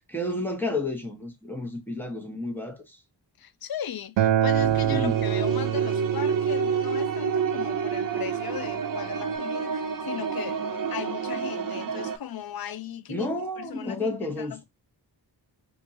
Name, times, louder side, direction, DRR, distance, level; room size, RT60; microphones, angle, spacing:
voice 1, 0.1-3.0 4.9-5.2 13.1-14.6, left 2 dB, 5° left, 1.1 m, -31 dB
voice 2, 3.4-14.6, left 9 dB, 55° left, 0.5 m, -37 dB
Acoustic guitar, 4.2-9.4, right 11 dB, 80° right, 0.5 m, -28 dB
sound 1, 4.5-12.2, right 6 dB, 50° right, 0.7 m, -29 dB
4.5 x 2.6 x 2.6 m
wide cardioid pair, 80°, 43 cm